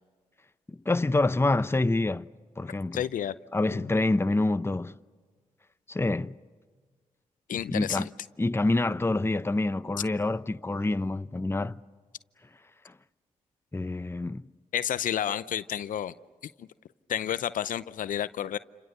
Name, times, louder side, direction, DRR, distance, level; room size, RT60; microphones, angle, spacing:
voice 1, 0.7-2.3 2.6-3.0 3.5-5.0 5.9-6.4 7.7-8.1 8.4-11.8 12.8-12.9 13.7-14.5, left 2 dB, 15° left, 0.8 m, -27 dB
voice 2, 2.9-3.3 3.7-3.9 7.5-8.1 14.7-16.1 16.6-16.7 17.1-18.6, left 10 dB, 70° left, 0.7 m, -30 dB
30.0 x 26.5 x 6.8 m
supercardioid pair, 45°, 14 cm